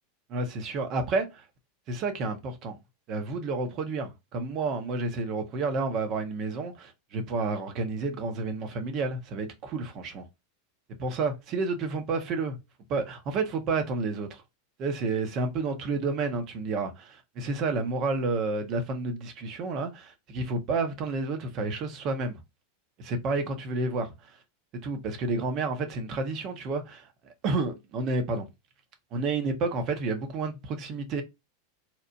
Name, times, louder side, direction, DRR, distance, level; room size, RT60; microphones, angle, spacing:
voice 1, 0.3-1.4 1.9-2.8 3.1-10.2 11.0-12.6 12.9-14.4 14.8-22.3 23.0-24.4 24.8-27.1 27.4-28.5 29.1-31.2, right 3 dB, 45° right, 0.7 m, -30 dB
2.9 x 2.0 x 2.5 m
hypercardioid pair, 95°, 0 cm